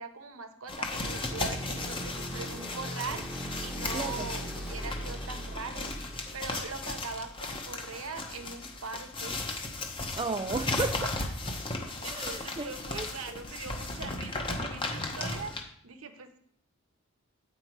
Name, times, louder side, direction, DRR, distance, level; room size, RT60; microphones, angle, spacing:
voice 1, 0.0-3.2 3.6-9.5 11.8-16.3, right 4 dB, 85° right, 6 dB, 1.0 m, -41 dB
sound 1, 0.7-15.6, left 2 dB, 25° left, 0.9 m, -36 dB
sound 2, 0.9-7.6, equal, 5° right, 1.0 m, -40 dB
voice 2, 3.9-4.3 10.1-11.2 12.1-12.7 12.9-13.4, right 3 dB, 25° right, 8 dB, 0.4 m, -34 dB
8.9 x 5.6 x 4.6 m, 0.66 s
head